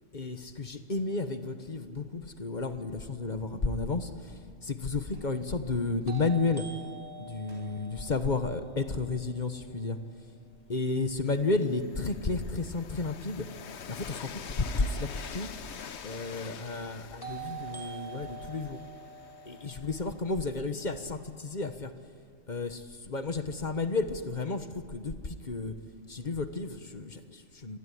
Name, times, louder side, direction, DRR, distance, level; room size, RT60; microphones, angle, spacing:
voice 1, 0.1-6.7 7.2-10.0 10.7-13.5 13.9-15.5 16.0-18.8 19.4-21.9 22.5-25.7 26.1-27.8, left 3 dB, 35° left, 9 dB, 1.3 m, -32 dB
sound 1, 4.1-4.2 6.1-10.0 17.2-21.2, right 6 dB, 15° left, 3.0 m, -46 dB
sound 2, 5.1-5.4 7.5-7.7 8.2-8.3 8.8-9.0 9.4-9.8 10.1-10.4 10.7-10.8 11.2-11.5 11.8-11.9 12.2-12.3 12.5-12.6 12.9-16.5, equal, 55° right, 7.7 m, -57 dB
Train, 11.2-21.1, left 8 dB, 60° left, 1.1 m, -46 dB
26.0 x 19.5 x 9.9 m, 2.2 s
omnidirectional pair, 1.3 m